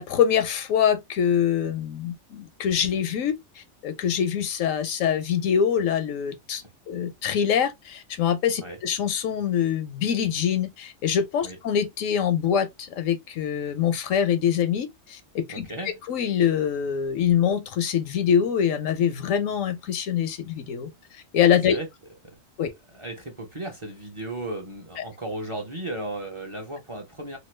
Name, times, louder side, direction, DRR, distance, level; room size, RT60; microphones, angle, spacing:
voice 1, 0.0-15.7 16.1-20.9 21.3-21.8 22.6-22.7, left 8 dB, 85° left, 1.1 m, -24 dB
voice 2, 15.5-16.0 21.7-21.9 22.2-22.3 22.9-27.4, right 1 dB, 30° right, 0.8 m, -35 dB
3.0 x 2.3 x 3.2 m
omnidirectional pair, 1.3 m